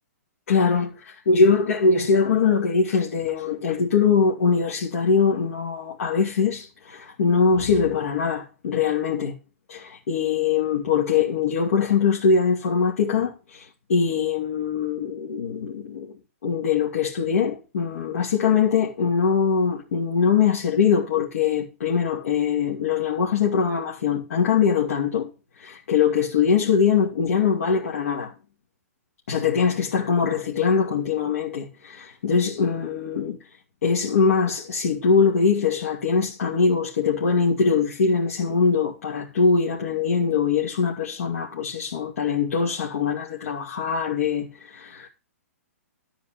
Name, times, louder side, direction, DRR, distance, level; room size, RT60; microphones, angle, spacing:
voice 1, 0.5-9.4 9.7-25.3 25.6-28.3 29.3-33.4 33.8-45.1, left 5 dB, 60° left, 2.5 m, -22 dB
12.5 x 4.6 x 7.3 m
figure-of-eight pair, 125°, 8 cm